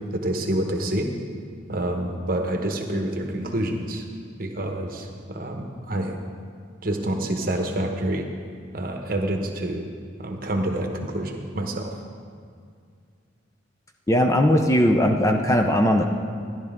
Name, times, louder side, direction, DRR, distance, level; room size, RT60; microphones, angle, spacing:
voice 1, 0.1-1.1 1.7-4.0 4.4-6.2 6.8-8.2 8.7-9.9 10.2-11.9, right 1 dB, 50° right, 3 dB, 1.0 m, -27 dB
voice 2, 14.1-16.0, equal, 15° left, 4 dB, 0.5 m, -19 dB
13.5 x 10.5 x 3.6 m, 2.2 s
head